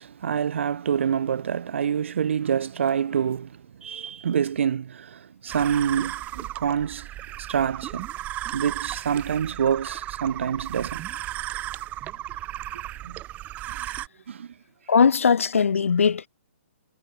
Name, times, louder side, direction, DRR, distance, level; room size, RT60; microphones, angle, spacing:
voice 1, 0.0-7.1 7.4-8.1 8.5-11.1 13.0-13.2 13.7-13.9 14.3-14.5, right 8 dB, 60° right, 2.9 m, -27 dB
sound 1, 5.5-14.1, right 14 dB, 20° right, 2.5 m, -35 dB
voice 2, 14.9-16.3, left 6 dB, 75° left, 2.5 m, -19 dB
hypercardioid pair, 140°, 7 cm